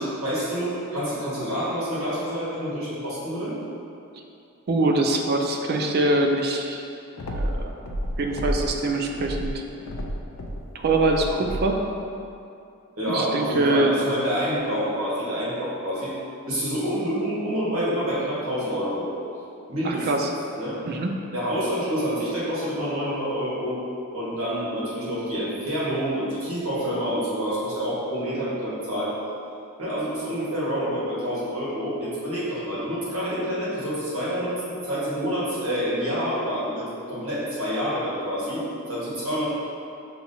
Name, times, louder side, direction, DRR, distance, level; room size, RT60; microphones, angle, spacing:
voice 1, 0.0-3.5 13.0-16.1 16.5-19.1 19.7-20.1 20.6-20.8 21.3-23.8 24.1-29.2 29.8-39.4, equal, 85° right, -9 dB, 1.5 m, -27 dB
voice 2, 4.7-6.8 7.3-7.8 8.2-9.5 10.7-11.9 13.0-14.0 19.8-20.3 20.9-21.2, right 2 dB, 50° right, 2 dB, 0.4 m, -23 dB
sound 1, 7.2-8.8 9.1-11.9, equal, 80° left, 0.4 m, -31 dB
5.8 x 2.9 x 2.7 m, 2.6 s
head